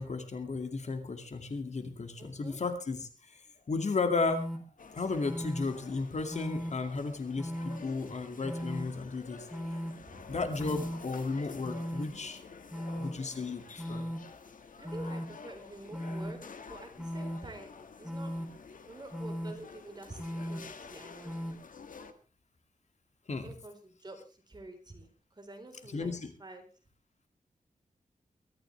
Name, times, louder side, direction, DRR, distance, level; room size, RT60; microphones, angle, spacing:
voice 1, 0.0-3.4 3.7-4.5 4.9-9.5 10.3-12.4 13.0-14.1 23.3-23.5 25.9-26.3, left 3 dB, 55° left, 7 dB, 2.4 m, -34 dB
voice 2, 2.2-2.6 10.0-10.4 14.8-16.4 16.7-17.7 18.0-18.3 18.9-21.4 23.4-25.1 25.4-26.6, right 2 dB, 30° right, 4 dB, 4.3 m, -48 dB
sound 1, 4.2-4.6 5.2-5.6 6.3-6.7 7.4-7.8 8.4-8.8 9.5-9.9 10.6-11.0 11.6-12.0 12.7-13.1 13.8-14.2 14.8-15.3 15.9-16.3 17.0-17.4 18.0-18.5 19.1-19.5 20.2-20.6 21.2-21.5, equal, ahead, 3.5 m, -37 dB
sound 2, 4.8-22.1, left 5 dB, 70° left, 1.8 m, -50 dB
23.0 x 13.5 x 3.4 m, 0.34 s
wide cardioid pair, 120°, 14 cm